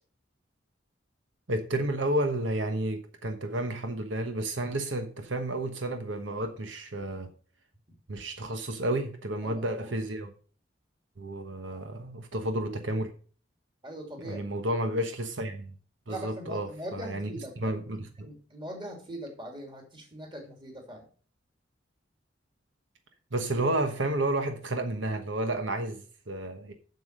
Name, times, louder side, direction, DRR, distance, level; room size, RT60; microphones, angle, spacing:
voice 1, 1.5-7.3 8.1-10.3 11.2-13.1 14.2-15.7 16.1-17.3 17.6-18.3 23.3-26.7, right 1 dB, 80° right, 6 dB, 1.2 m, -31 dB
voice 2, 9.4-9.9 13.8-14.5 16.1-17.7 18.2-21.0, right 1 dB, 25° right, 2 dB, 2.8 m, -41 dB
7.9 x 7.0 x 5.2 m, 0.40 s
head